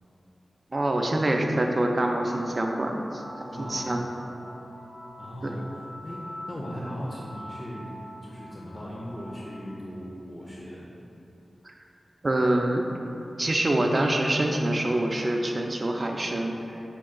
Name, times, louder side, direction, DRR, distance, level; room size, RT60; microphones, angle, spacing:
voice 1, 0.7-4.1 5.4-5.6 11.6-11.8 12.2-12.8 13.4-16.8, right 1 dB, 40° right, 2 dB, 0.4 m, -26 dB
sound 1, 2.0-9.7, equal, 90° right, 0.6 m, -44 dB
voice 2, 3.5-4.0 5.2-7.9 8.2-10.9, equal, 30° left, -5 dB, 0.5 m, -38 dB
5.1 x 2.3 x 3.7 m, 3.0 s
wide cardioid pair, 80°, 0 cm